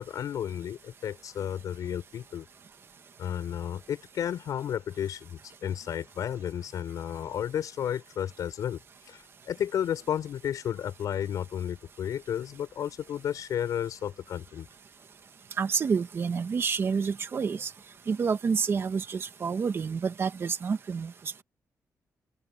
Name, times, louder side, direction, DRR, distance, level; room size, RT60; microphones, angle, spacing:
voice 1, 0.0-2.5 3.2-8.8 9.1-14.7, left 9 dB, 80° left, 5.8 m, -32 dB
voice 2, 15.6-17.7 18.1-21.1, right 5 dB, 45° right, 1.5 m, -28 dB
open air
wide cardioid pair, 145°, 6 cm